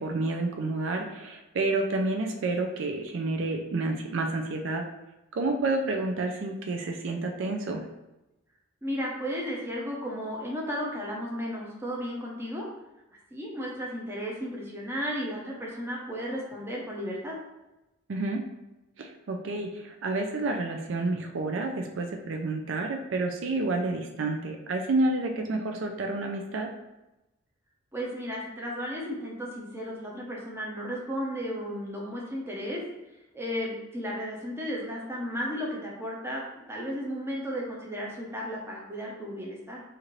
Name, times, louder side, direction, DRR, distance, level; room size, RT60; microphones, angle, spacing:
voice 1, 0.0-4.8 5.3-7.8 18.1-18.4 19.0-26.7, right 2 dB, 70° right, 3 dB, 0.4 m, -29 dB
voice 2, 8.8-12.6 13.3-17.4 27.9-32.8 33.3-39.8, equal, 10° right, -3 dB, 0.6 m, -34 dB
4.2 x 2.5 x 3.0 m, 0.97 s
head